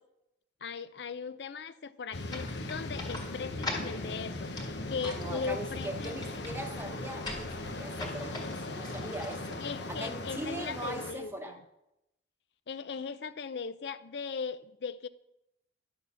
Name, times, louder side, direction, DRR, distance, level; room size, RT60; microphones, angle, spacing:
voice 1, 0.6-6.2 9.6-11.6 12.7-15.1, left 5 dB, 70° left, 0.5 m, -38 dB
sound 1, 2.1-11.1, left 2 dB, 90° left, 1.0 m, -39 dB
sound 2, 2.3-10.1, left 2 dB, 25° left, 1.7 m, -43 dB
voice 2, 5.0-9.6 9.9-11.6, right 1 dB, 15° right, 0.9 m, -41 dB
10.5 x 6.4 x 7.0 m
head